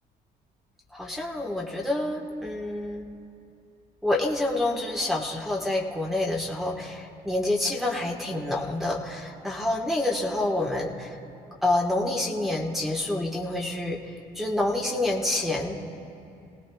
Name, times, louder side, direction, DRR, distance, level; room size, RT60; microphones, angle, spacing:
voice 1, 0.9-3.0 4.0-11.1 11.6-14.0 14.3-15.8, left 2 dB, ahead, -4 dB, 1.5 m, -27 dB
27.0 x 17.5 x 2.4 m, 2.7 s
cardioid pair, 110°, 17 cm